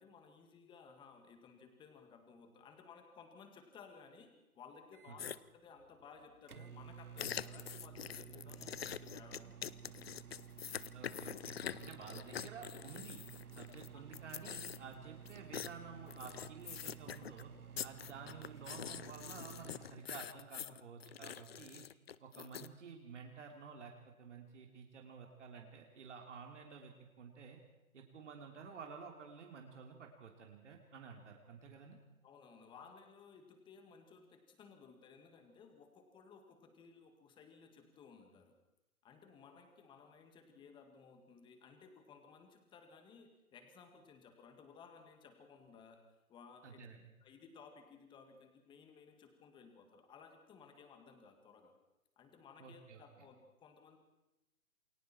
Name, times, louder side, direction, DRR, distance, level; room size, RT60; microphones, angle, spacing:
voice 1, 0.0-10.1 11.4-11.8 13.9-14.0 32.2-38.6 39.0-46.0 46.3-46.9 47.2-51.7 52.2-54.0, left 5 dB, 10° left, 6 dB, 2.1 m, -59 dB
Microwave oven, 4.9-20.0, right 8 dB, 85° right, 1.1 m, -54 dB
sound 1, 5.2-5.4 7.2-13.9 14.1-14.9 15.3-15.7 16.1-17.4 17.8-22.7, left 9 dB, 45° left, 0.6 m, -45 dB
voice 2, 10.9-11.5 11.8-13.2 13.5-17.5 17.8-21.8 22.2-27.6 27.9-32.0 46.6-47.1 52.6-53.0, right 6 dB, 55° right, 2 dB, 3.3 m, -52 dB
28.5 x 22.0 x 4.5 m, 0.97 s
figure-of-eight pair, 145°, 43 cm